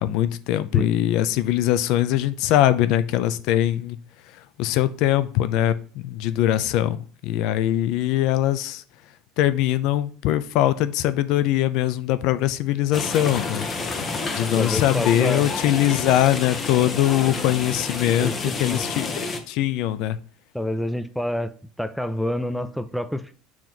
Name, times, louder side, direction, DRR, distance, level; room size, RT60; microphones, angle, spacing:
voice 1, 0.0-4.0 4.6-8.8 9.4-13.7 14.3-18.3 18.6-19.1 19.5-20.2, left 13 dB, 65° left, 0.5 m, -22 dB
sound 1, 12.9-19.4, left 3 dB, 25° left, 1.0 m, -29 dB
voice 2, 14.6-15.5 18.2-18.8 20.5-23.3, left 1 dB, ahead, 0.4 m, -28 dB
7.1 x 3.0 x 5.8 m
cardioid pair, 135°, 0 cm